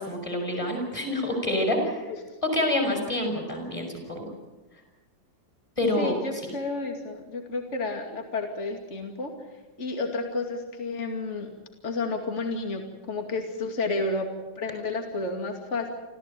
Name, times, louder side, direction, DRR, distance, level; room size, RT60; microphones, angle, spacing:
voice 1, 0.0-2.0 2.5-4.3 5.8-6.2, left 1 dB, 15° left, 3 dB, 6.5 m, -27 dB
voice 2, 6.0-9.3 9.8-11.5 11.8-14.3 14.6-15.9, left 3 dB, 35° left, 4 dB, 2.7 m, -31 dB
27.5 x 15.0 x 9.1 m, 1.2 s
omnidirectional pair, 2.1 m